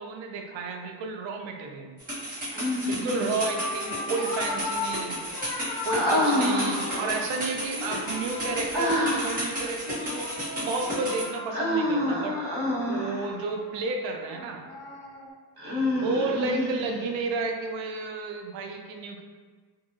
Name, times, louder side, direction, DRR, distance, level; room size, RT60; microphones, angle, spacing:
voice 1, 0.0-2.0 2.9-5.2 5.8-10.3 10.6-12.4 12.7-14.6 16.0-19.2, right 3 dB, 85° right, 3 dB, 0.5 m, -32 dB
sound 1, 2.0-11.2, equal, 20° right, 1.2 m, -33 dB
Human voice, 2.5-3.4 5.9-7.2 8.7-9.5 11.5-13.3 15.6-17.2, left 1 dB, 60° right, 1.3 m, -27 dB
sound 2, 2.9-3.0 3.3-7.4 7.7-9.5 9.9-15.3, left 3 dB, 60° left, 0.7 m, -37 dB
2.6 x 2.6 x 2.6 m, 1.5 s
cardioid pair, 95°, 44 cm